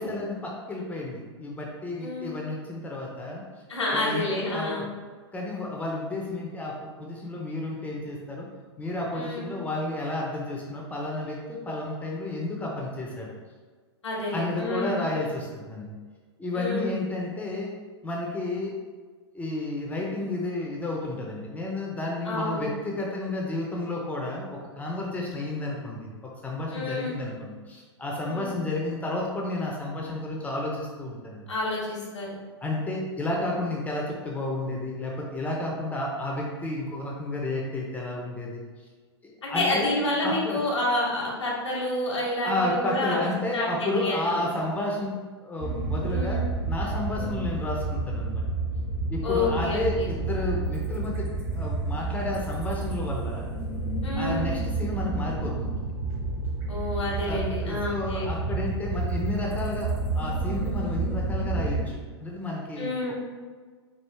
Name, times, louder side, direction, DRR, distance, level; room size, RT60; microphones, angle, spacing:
voice 1, 0.0-3.4 3.9-4.9 5.3-8.5 8.8-13.3 14.3-16.0 16.4-17.7 18.0-18.7 19.3-26.1 26.4-31.5 32.6-38.6 39.5-39.9 40.2-40.6 42.4-48.4 49.1-53.5 54.2-55.7 57.3-63.1, left 2 dB, 10° left, -2 dB, 0.6 m, -31 dB
voice 2, 2.0-2.3 3.7-4.9 9.1-9.4 14.0-15.0 16.5-17.0 22.2-22.7 26.7-27.1 28.2-28.5 31.5-32.3 39.4-44.5 46.0-46.5 47.1-47.4 49.2-50.1 54.0-54.5 56.7-58.3 62.8-63.1, left 2 dB, 85° left, -5 dB, 1.1 m, -29 dB
sound 1, 45.6-61.8, right 3 dB, 35° right, 1.3 m, -30 dB
4.6 x 2.4 x 3.3 m, 1.5 s
hypercardioid pair, 115°, 15 cm